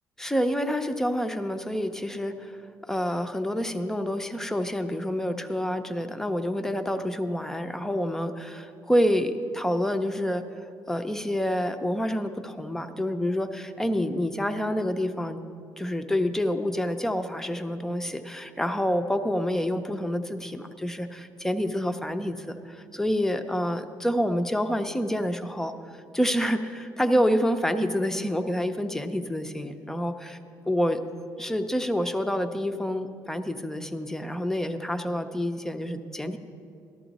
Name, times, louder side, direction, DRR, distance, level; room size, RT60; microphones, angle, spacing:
voice 1, 0.2-2.5 2.9-10.4 10.9-15.4 15.8-25.7 26.1-30.4 30.7-31.0 31.4-36.4, equal, 5° left, 8 dB, 0.4 m, -28 dB
13.5 x 12.5 x 4.0 m, 2.6 s
cardioid pair, 165°, 7 cm